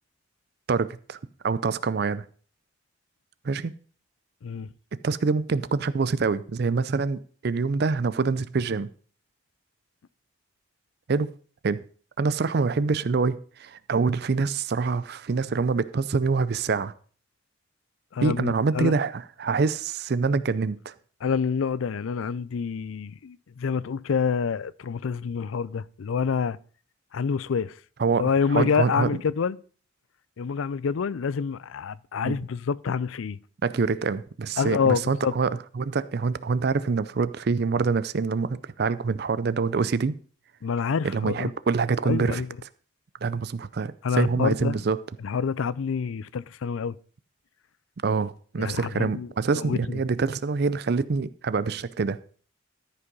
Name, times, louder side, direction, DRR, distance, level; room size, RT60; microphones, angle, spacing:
voice 1, 0.7-1.2 1.4-2.2 3.4-3.7 5.0-8.9 11.1-11.3 11.6-11.8 12.2-16.9 18.2-20.9 28.0-28.2 28.5-29.1 32.2-32.4 33.6-35.5 35.8-40.1 41.0-42.4 43.2-45.0 48.0-52.2, right 4 dB, 55° right, 0.4 m, -25 dB
voice 2, 18.1-18.9 21.2-26.6 27.1-27.8 28.2-29.6 30.4-33.4 34.6-35.3 40.6-41.5 42.0-42.5 44.0-44.8 45.2-47.0 48.6-50.0, left 6 dB, 85° left, 0.4 m, -27 dB
13.5 x 5.6 x 5.3 m
head